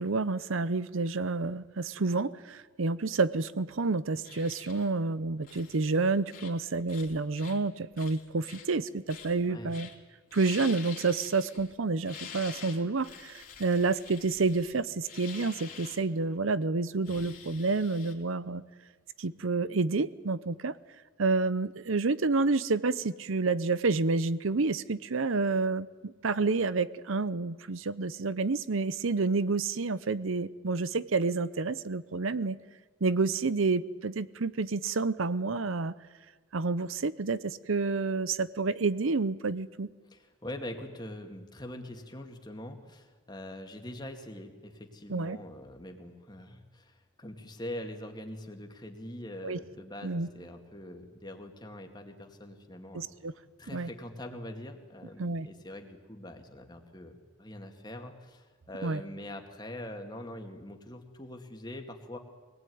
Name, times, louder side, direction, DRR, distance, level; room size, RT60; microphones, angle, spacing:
voice 1, 0.0-9.9 10.3-18.6 19.2-20.7 21.2-32.6 33.0-35.9 36.5-39.9 45.1-45.4 49.4-49.6 50.0-50.3 52.9-53.3 53.7-53.9 55.2-55.5 58.8-59.0, right 3 dB, 85° right, 16 dB, 0.8 m, -29 dB
sound 1, 4.2-4.9 5.4-6.0 6.3-6.6 6.9-7.6 8.0-8.7 9.1-9.4 9.7-9.9 10.3-11.7 12.0-16.0 17.0-18.1, left 7 dB, 45° left, 2.9 m, -47 dB
voice 2, 40.1-53.1 53.6-62.2, left 1 dB, 20° left, 4 dB, 2.2 m, -43 dB
24.0 x 19.0 x 9.5 m, 1.4 s
head